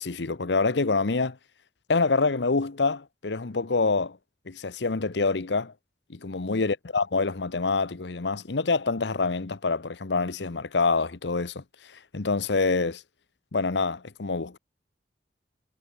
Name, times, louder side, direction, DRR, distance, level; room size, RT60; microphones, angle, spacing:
voice 1, 0.0-1.4 1.9-4.2 4.5-5.7 6.1-11.6 12.1-13.0 13.5-14.6, left 4 dB, 80° left, 0.9 m, -26 dB
head